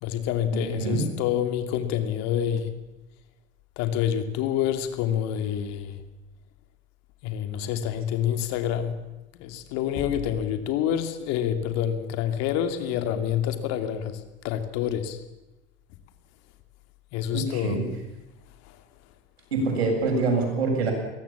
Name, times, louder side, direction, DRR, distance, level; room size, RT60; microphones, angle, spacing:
voice 1, 0.0-2.8 3.8-6.0 7.2-9.0 9.4-15.2 17.1-17.8 18.6-18.8, left 10 dB, 55° left, 2.7 m, -27 dB
voice 2, 0.5-1.0 17.3-17.8 19.5-20.9, right 3 dB, 80° right, 7.5 m, -25 dB
22.0 x 18.5 x 7.2 m
hypercardioid pair, 85°, 31 cm